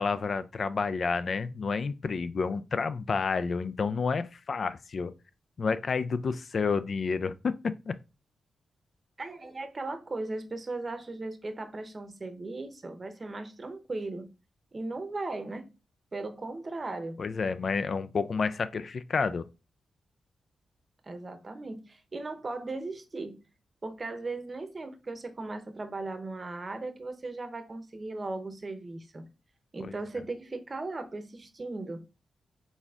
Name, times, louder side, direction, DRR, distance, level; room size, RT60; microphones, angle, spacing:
voice 1, 0.0-5.1 5.6-7.5 7.9-8.0 17.2-19.5 29.8-29.9, left 5 dB, 60° left, 0.3 m, -30 dB
voice 2, 9.2-14.3 14.7-15.7 16.1-17.2 21.0-23.4 23.8-29.3 29.7-32.0, right 2 dB, 40° right, 0.7 m, -37 dB
4.1 x 3.5 x 2.3 m
cardioid pair, 65°, 0 cm